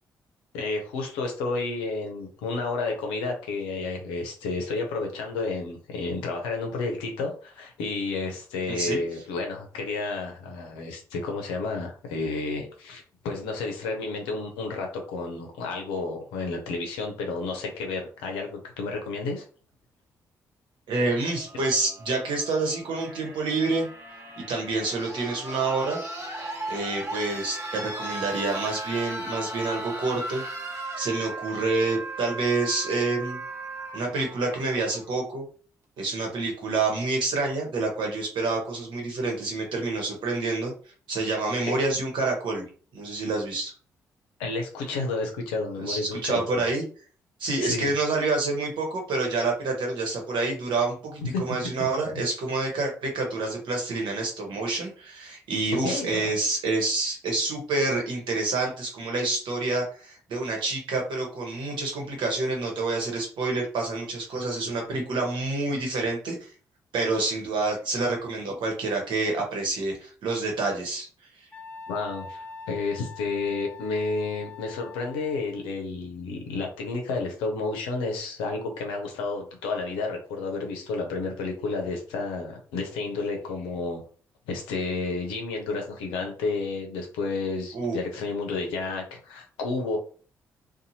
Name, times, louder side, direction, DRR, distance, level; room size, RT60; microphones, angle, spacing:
voice 1, 0.5-19.4 41.7-41.8 44.4-46.6 47.6-47.9 51.3-51.4 55.8-56.3 64.6-64.8 71.9-84.0 84.5-90.0, left 3 dB, 75° left, 2 dB, 0.7 m, -31 dB
voice 2, 8.7-9.0 20.9-23.9 24.4-26.0 26.7-30.4 31.0-33.4 33.9-35.4 36.0-40.7 41.1-42.6 42.9-43.7 45.8-46.8 47.4-66.5 66.9-71.1 87.7-88.0, right 3 dB, 60° right, 1 dB, 1.1 m, -28 dB
sound 1, 21.2-35.2 36.4-36.5, right 2 dB, 35° right, 1.1 m, -37 dB
Wind instrument woodwind instrument, 71.5-75.6, left 5 dB, 15° left, 0.7 m, -43 dB
2.7 x 2.4 x 2.8 m, 0.40 s
hypercardioid pair, 40°, 9 cm